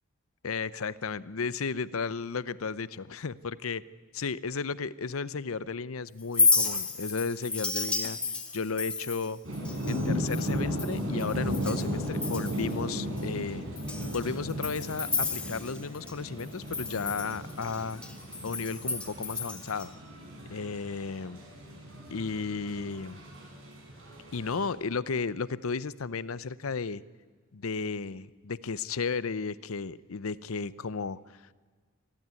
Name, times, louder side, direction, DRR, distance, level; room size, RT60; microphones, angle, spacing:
voice 1, 0.4-3.8 4.1-8.2 8.5-9.4 9.9-13.7 14.1-18.0 18.4-19.9 20.5-21.4 22.1-23.2 24.3-27.0 27.5-31.2, left 5 dB, 85° left, 18 dB, 0.7 m, -34 dB
Chink clink, 6.2-11.9 12.1-12.7 13.2-13.3 13.8-16.1 16.4-19.9, left 3 dB, 5° left, 1.9 m, -31 dB
sound 1, 9.4-24.7, equal, 70° right, 5.9 m, -36 dB
23.0 x 15.0 x 9.6 m, 1.5 s
head